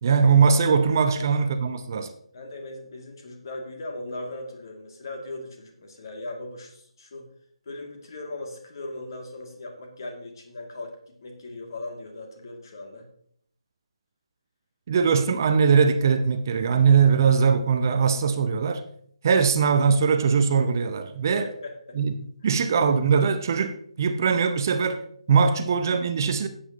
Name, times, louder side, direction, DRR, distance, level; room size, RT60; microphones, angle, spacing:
voice 1, 0.0-2.1 14.9-18.8 19.2-21.4 22.0-22.1 22.4-25.0 25.3-26.5, right 6 dB, 35° right, 0.7 m, -21 dB
voice 2, 2.3-7.3 7.6-13.1 21.4-22.0, left 2 dB, 40° left, 2.3 m, -38 dB
13.5 x 8.5 x 2.9 m
figure-of-eight pair, 145°, 3 cm